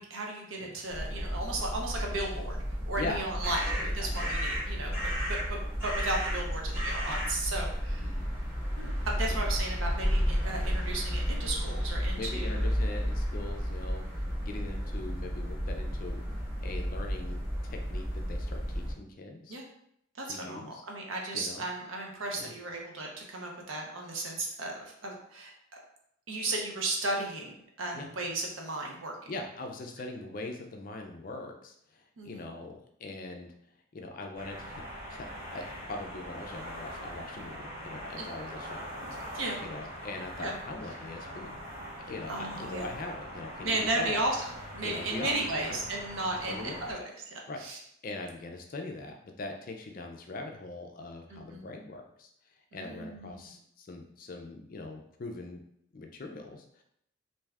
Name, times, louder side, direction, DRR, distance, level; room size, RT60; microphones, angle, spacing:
voice 1, 0.0-2.6 2.9-5.0 5.2-8.0 8.8-12.6 19.5-19.6 20.2-25.5 26.3-29.1 32.2-32.4 38.2-38.3 39.3-39.6 40.4-40.5 42.3-42.9 43.6-44.4 44.7-47.1 47.6-47.8 51.3-51.6 52.7-53.5, right 2 dB, 75° right, 0 dB, 0.7 m, -35 dB
sound 1, 0.9-18.9, equal, 10° right, 0.9 m, -32 dB
voice 2, 2.9-4.5 4.8-5.1 7.1-7.3 8.0-8.3 8.8-8.9 9.3-9.5 10.5-10.6 12.1-19.6 20.2-20.8 21.3-21.6 22.3-22.5 27.9-28.1 29.3-33.5 33.9-34.8 35.1-41.6 42.0-44.1 44.8-45.9 46.3-46.9 47.5-47.6 48.0-55.6 55.9-56.8, left 2 dB, 40° left, 3 dB, 0.4 m, -42 dB
sound 2, 34.4-46.9, equal, 50° right, 0.9 m, -42 dB
2.6 x 2.3 x 3.3 m, 0.73 s
head